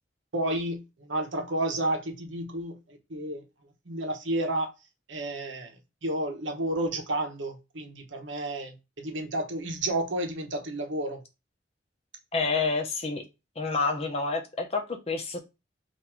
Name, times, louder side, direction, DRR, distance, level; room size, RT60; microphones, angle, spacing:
voice 1, 0.3-3.4 3.9-4.7 5.1-5.7 6.0-11.2, right 1 dB, 85° right, 1.0 m, -31 dB
voice 2, 12.3-13.2 13.6-15.4, left 4 dB, 30° left, 0.7 m, -28 dB
3.7 x 2.6 x 4.3 m
head